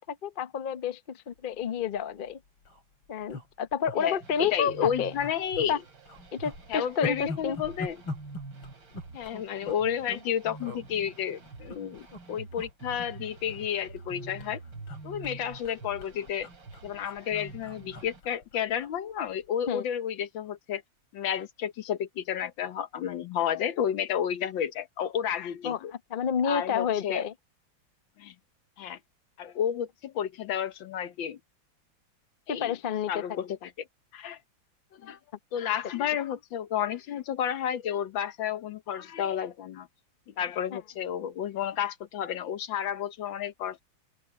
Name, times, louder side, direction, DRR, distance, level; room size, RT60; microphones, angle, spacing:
voice 1, 0.0-2.4 3.1-5.1 5.7-5.8 6.3-7.6 19.7-19.8 25.6-25.8 26.1-27.3 32.5-33.2 40.7-40.8, left 7 dB, 55° left, 0.5 m, -30 dB
sound 1, 1.8-2.0 2.3-2.4 2.6-2.8 3.3-4.0 4.3-4.5 4.8-5.7 6.1-10.3 10.6-10.8 11.5-12.2 12.5-12.7 13.0-14.1 14.4-18.9 19.3-19.5, left 2 dB, 85° left, 5.1 m, -42 dB
voice 2, 4.0-5.7 6.7-8.0 9.1-14.6 15.0-16.5 16.8-20.8 21.1-25.9 26.4-27.3 28.2-28.3 28.8-29.0 29.4-31.4 32.5-32.7 33.1-33.9 34.1-34.4 34.9-35.2 35.5-39.9 40.3-43.8, left 9 dB, 70° left, 1.7 m, -31 dB
sound 2, 4.2-18.2, right 3 dB, 65° right, 4.1 m, -46 dB
open air
omnidirectional pair, 2.2 m